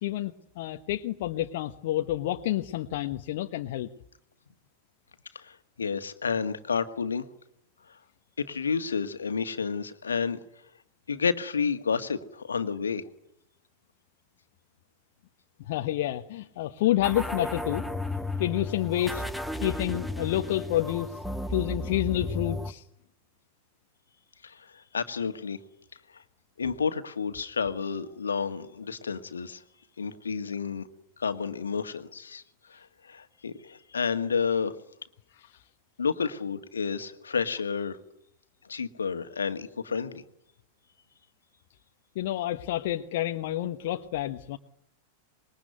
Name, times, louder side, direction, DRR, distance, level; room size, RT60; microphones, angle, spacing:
voice 1, 0.0-3.9 15.7-17.8 18.4-19.2 19.6-21.2 21.5-22.8 42.1-44.6, left 14 dB, 50° left, 5 dB, 1.2 m, -29 dB
voice 2, 5.3-7.3 8.4-10.4 11.1-13.0 24.4-25.6 26.1-26.2 26.6-29.6 30.0-30.9 31.2-32.4 32.7-34.8 36.0-38.0 38.7-40.2, left 5 dB, 70° left, 9 dB, 1.9 m, -30 dB
sound 1, 17.0-22.7, left 1 dB, ahead, 1.5 m, -34 dB
26.0 x 22.0 x 9.5 m, 0.78 s
figure-of-eight pair, 90°, 0 cm